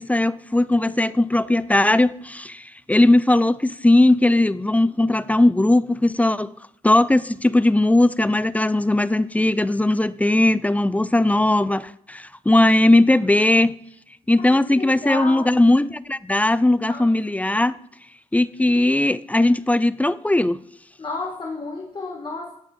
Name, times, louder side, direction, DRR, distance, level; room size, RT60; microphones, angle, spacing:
voice 1, 0.0-6.5 6.8-13.7 14.3-17.8 18.3-20.6, left 1 dB, 10° left, 0.5 m, -18 dB
voice 2, 14.4-15.5 16.9-17.1 21.0-22.5, left 3 dB, 35° left, 2.3 m, -32 dB
17.5 x 8.7 x 5.3 m
cardioid pair, 90°, 14 cm